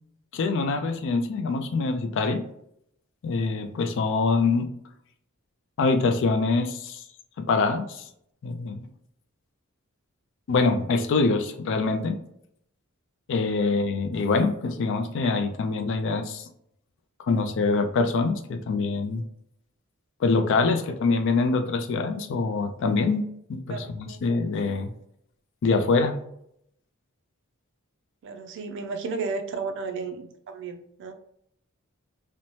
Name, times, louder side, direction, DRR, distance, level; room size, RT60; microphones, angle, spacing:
voice 1, 0.3-2.5 3.2-4.7 5.8-7.0 7.4-8.0 8.4-8.8 10.5-12.2 13.3-16.5 17.3-19.2 20.2-24.9 25.6-26.1, left 3 dB, 60° left, 7 dB, 0.3 m, -24 dB
voice 2, 23.7-24.2 28.2-31.1, right 4 dB, 60° right, 7 dB, 0.4 m, -34 dB
2.7 x 2.1 x 3.1 m, 0.74 s
head